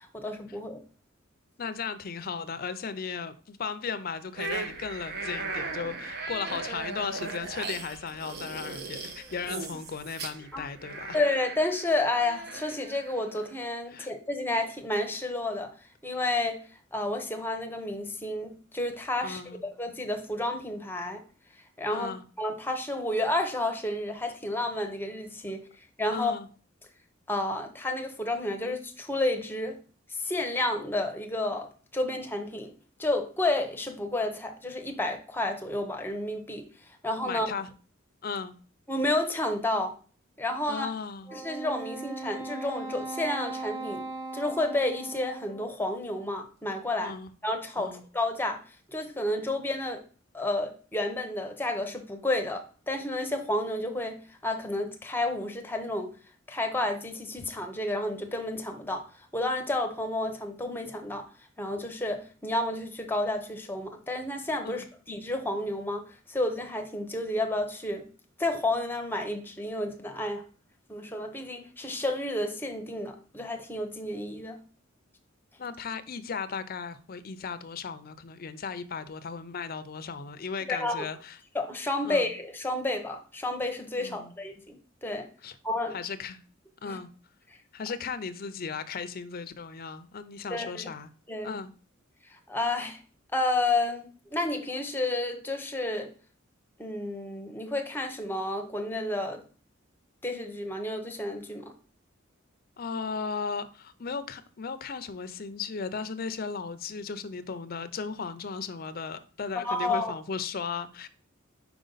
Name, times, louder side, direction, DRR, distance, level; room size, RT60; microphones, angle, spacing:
voice 1, 0.1-0.8 10.5-10.7 11.1-15.7 16.0-16.6 16.9-19.4 19.8-21.2 21.8-25.6 26.0-26.3 27.3-29.8 30.1-32.7 33.0-36.7 37.0-37.5 38.9-40.0 40.4-40.9 41.3-44.1 44.3-47.2 47.4-48.6 48.9-50.0 50.3-56.1 56.5-59.0 59.3-61.3 61.6-68.1 68.4-70.4 70.9-74.6 80.7-81.1 81.5-85.3 85.6-86.0 86.8-87.0 90.5-90.9 91.3-91.5 92.5-93.0 93.3-96.1 96.8-99.4 100.2-101.7 109.6-110.1, left 2 dB, 10° left, 0.8 m, -31 dB
voice 2, 1.6-11.2 13.9-14.1 19.2-19.6 21.9-22.2 26.1-26.5 37.2-37.7 38.2-38.5 40.7-41.3 47.0-47.3 47.8-48.0 64.6-64.9 75.6-81.4 82.0-82.3 84.0-84.3 85.4-85.6 85.9-86.4 86.8-87.1 87.7-91.1 91.4-91.7 102.8-111.1, left 5 dB, 50° left, 0.5 m, -36 dB
sound 1, 4.3-13.5, right 3 dB, 55° right, 0.8 m, -38 dB
Wind instrument woodwind instrument, 41.3-45.8, right 3 dB, 15° right, 1.6 m, -38 dB
5.1 x 4.8 x 3.9 m
head